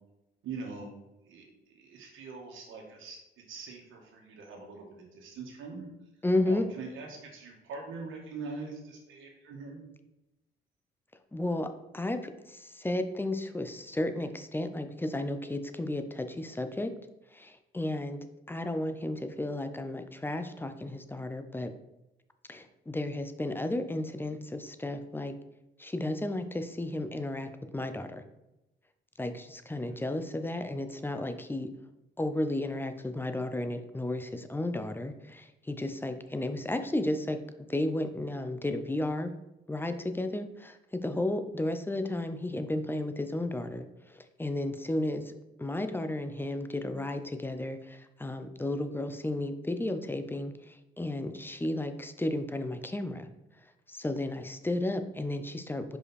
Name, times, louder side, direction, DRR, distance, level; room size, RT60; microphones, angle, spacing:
voice 1, 0.4-0.9 1.3-1.4 1.7-3.2 3.5-5.9 6.5-9.8 29.9-30.0, right 4 dB, 80° right, 1 dB, 1.7 m, -43 dB
voice 2, 6.2-6.7 11.3-16.9 17.3-21.7 22.5-25.4 25.8-28.2 29.2-31.7 32.2-37.4 37.7-39.4 39.7-45.3 45.6-53.3 53.9-56.0, left 1 dB, 10° left, 8 dB, 0.6 m, -33 dB
5.1 x 5.0 x 4.2 m, 0.95 s
cardioid pair, 90°, 20 cm